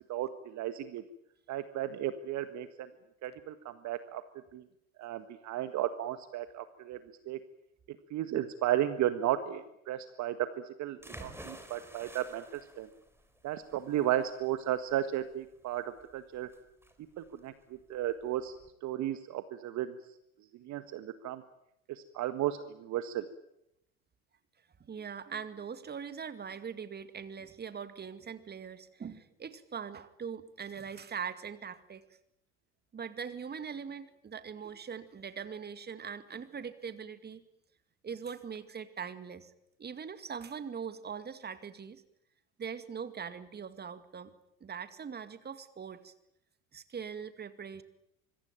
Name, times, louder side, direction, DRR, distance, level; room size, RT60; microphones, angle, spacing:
voice 1, 0.1-1.0 1.5-2.9 3.2-4.2 4.5-4.6 5.0-7.0 7.3-7.4 8.1-12.9 13.4-16.5 17.2-17.5 17.9-18.6 18.8-20.0 20.6-21.4 21.9-23.2, right 12 dB, 40° right, 11 dB, 1.6 m, -34 dB
sound 1, 11.0-18.7, right 1 dB, 5° right, 4.7 m, -52 dB
voice 2, 24.8-32.1 32.9-37.4 38.0-39.5 39.8-42.0 42.6-44.3 44.6-46.1 46.7-47.8, right 6 dB, 25° right, 11 dB, 2.2 m, -41 dB
25.5 x 22.5 x 9.2 m, 0.81 s
figure-of-eight pair, 70°, 42 cm